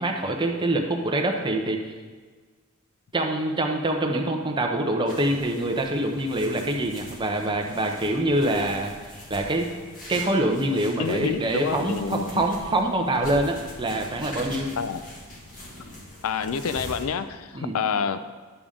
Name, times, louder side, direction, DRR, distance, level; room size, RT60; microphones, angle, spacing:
voice 1, 0.0-1.8 3.1-9.7 10.1-14.7 17.5-17.8, right 1 dB, 20° right, 2 dB, 0.8 m, -25 dB
sound 1, 5.1-17.0, left 1 dB, 40° left, 1.8 m, -42 dB
voice 2, 11.0-12.4 14.8-15.0 16.2-18.2, left 6 dB, 65° left, 11 dB, 0.4 m, -28 dB
10.0 x 6.9 x 3.7 m, 1.5 s
head